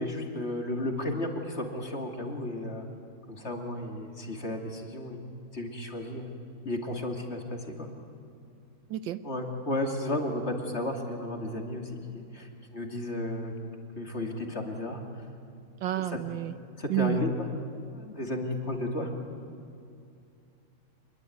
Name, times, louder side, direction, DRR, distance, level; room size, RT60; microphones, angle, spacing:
voice 1, 0.0-2.8 3.3-5.2 5.5-6.3 6.6-7.9 9.2-13.5 14.0-15.0 15.9-16.2 16.8-17.3 17.9-19.1, left 1 dB, 30° left, 2 dB, 2.7 m, -33 dB
voice 2, 15.8-16.5 16.9-17.2, right 14 dB, 75° right, 12 dB, 1.5 m, -30 dB
26.0 x 22.0 x 9.3 m, 2.6 s
omnidirectional pair, 2.2 m